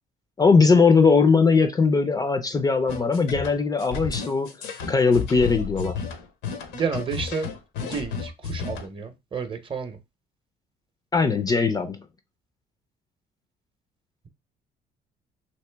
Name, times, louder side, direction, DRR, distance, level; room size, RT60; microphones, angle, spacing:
voice 1, 0.4-4.5 4.9-6.0 11.1-12.0, left 4 dB, 20° left, 0.4 m, -20 dB
sound 1, 2.9-8.9, left 5 dB, 85° left, 0.8 m, -32 dB
voice 2, 6.7-7.5 7.8-10.0, right 5 dB, 30° right, 0.7 m, -31 dB
2.9 x 2.8 x 3.3 m
cardioid pair, 110°, 17 cm